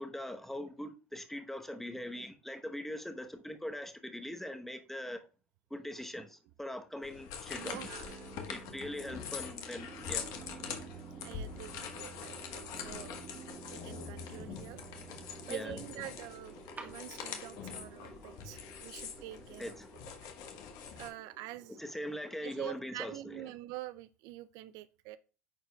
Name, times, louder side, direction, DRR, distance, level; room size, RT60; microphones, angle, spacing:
voice 1, 0.0-5.2 5.7-7.8 8.5-10.3 15.5-15.8 19.6-20.0 21.7-23.5, left 1 dB, 5° left, 1.0 m, -41 dB
sound 1, 7.0-21.1, left 7 dB, 60° left, 1.2 m, -44 dB
sound 2, 7.6-15.6, right 9 dB, 45° right, 1.0 m, -52 dB
voice 2, 7.6-8.2 11.2-13.1 13.7-14.8 15.5-19.8 20.2-20.3 21.0-21.8 22.4-25.2, right 15 dB, 60° right, 0.3 m, -46 dB
sound 3, 8.8-22.5, right 3 dB, 20° right, 1.1 m, -54 dB
9.5 x 4.3 x 2.3 m
hypercardioid pair, 85°, 7 cm